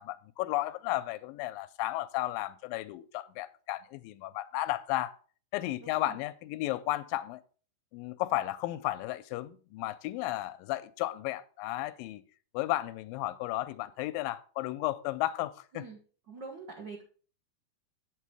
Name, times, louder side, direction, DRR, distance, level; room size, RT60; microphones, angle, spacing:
voice 1, 0.0-5.1 5.5-7.4 7.9-12.2 12.5-15.9, left 16 dB, 80° left, 2.1 m, -34 dB
voice 2, 16.3-17.0, right 4 dB, 60° right, 1.1 m, -44 dB
8.7 x 6.7 x 4.7 m
omnidirectional pair, 4.2 m